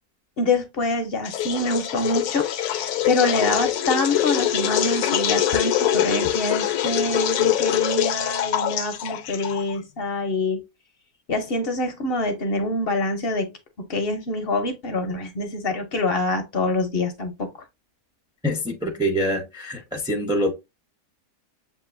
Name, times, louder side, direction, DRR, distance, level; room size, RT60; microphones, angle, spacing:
voice 1, 0.4-10.6 11.3-13.5 13.9-17.5, left 2 dB, 50° left, 0.7 m, -25 dB
sound 1, 1.2-9.8, left 11 dB, 75° left, 1.0 m, -24 dB
voice 2, 18.4-20.5, equal, 5° right, 0.5 m, -25 dB
7.3 x 2.5 x 2.5 m
omnidirectional pair, 1.6 m